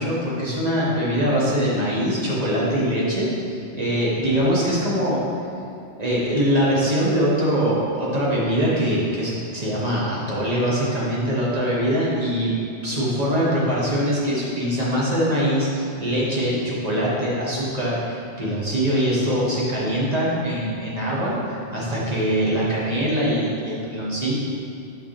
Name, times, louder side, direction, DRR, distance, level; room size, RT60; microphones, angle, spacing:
voice 1, 0.0-5.2 6.0-12.5 12.8-24.3, equal, 35° right, -7 dB, 1.6 m, -23 dB
6.6 x 5.9 x 3.4 m, 2.5 s
omnidirectional pair, 1.2 m